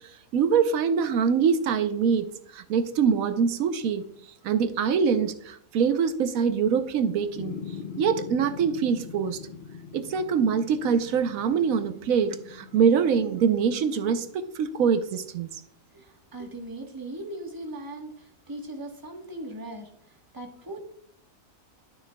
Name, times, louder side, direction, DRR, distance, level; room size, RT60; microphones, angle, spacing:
voice 1, 0.3-4.0 4.4-7.6 8.0-9.4 9.9-15.6, right 6 dB, 85° right, 9 dB, 1.1 m, -24 dB
sound 1, 7.3-13.8, left 6 dB, 55° left, 0.7 m, -42 dB
voice 2, 15.9-20.8, right 1 dB, 15° right, 2 dB, 1.2 m, -39 dB
12.0 x 6.4 x 2.2 m, 0.67 s
omnidirectional pair, 1.4 m